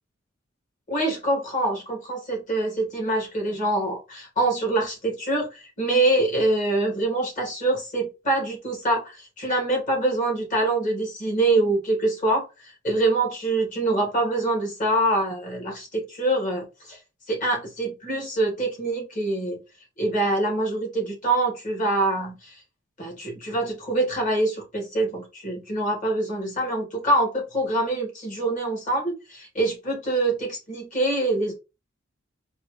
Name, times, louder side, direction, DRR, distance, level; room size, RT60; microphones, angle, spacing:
voice 1, 0.9-17.0 17.3-19.6 20.0-22.5 23.0-31.5, right 2 dB, 40° left, 1 dB, 1.4 m, -25 dB
4.2 x 2.3 x 3.0 m, 0.27 s
head